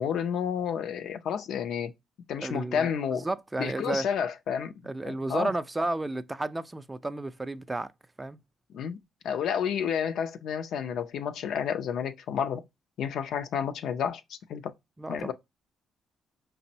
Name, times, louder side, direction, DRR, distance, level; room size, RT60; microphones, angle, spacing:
voice 1, 0.0-1.9 2.3-3.3 3.6-4.7 5.1-5.5 8.7-9.0 9.2-12.6 13.0-14.7 15.1-15.3, left 8 dB, 75° left, 0.4 m, -30 dB
voice 2, 2.4-4.1 4.8-7.9 8.2-8.4 15.0-15.3, right 2 dB, 15° right, 0.3 m, -32 dB
5.0 x 2.0 x 2.6 m
cardioid pair, 90°, 0 cm